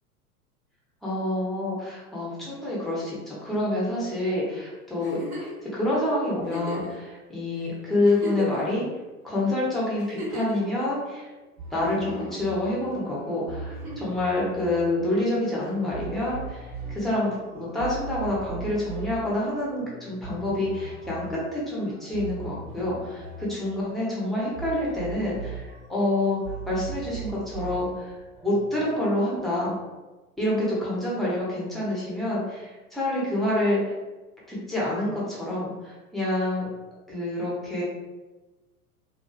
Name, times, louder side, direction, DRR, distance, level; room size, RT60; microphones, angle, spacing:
voice 1, 1.0-8.8 9.2-11.3 11.7-26.4 26.7-28.2 28.4-29.7 30.4-33.8 34.5-36.7 37.1-37.8, left 1 dB, ahead, -6 dB, 0.5 m, -27 dB
Giggle, 5.0-5.6 6.4-6.9 7.6-7.7 8.0-8.8 10.0-10.6 11.8-12.4 13.7-14.2 15.6-15.7, equal, 35° right, 1.1 m, -35 dB
sound 1, 11.6-28.8, right 4 dB, 60° right, 1.0 m, -40 dB
2.6 x 2.3 x 2.3 m, 1.2 s
figure-of-eight pair, 95°, 45 cm